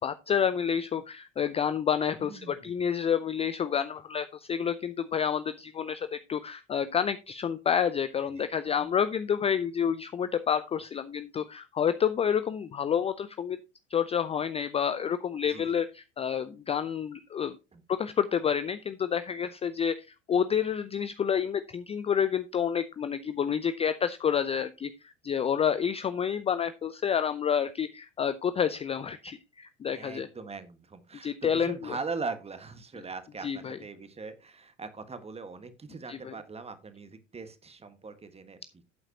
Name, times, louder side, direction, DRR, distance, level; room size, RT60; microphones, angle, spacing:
voice 1, 0.0-13.6 13.9-17.5 18.0-30.3 31.2-32.0 33.4-33.8 36.1-36.3, left 8 dB, 15° left, 13 dB, 0.5 m, -29 dB
voice 2, 2.2-2.8 8.3-8.9 15.5-15.8 17.7-17.8 29.9-38.8, right 4 dB, 15° right, 10 dB, 1.5 m, -41 dB
11.5 x 8.8 x 2.9 m, 0.27 s
figure-of-eight pair, 70°, 36 cm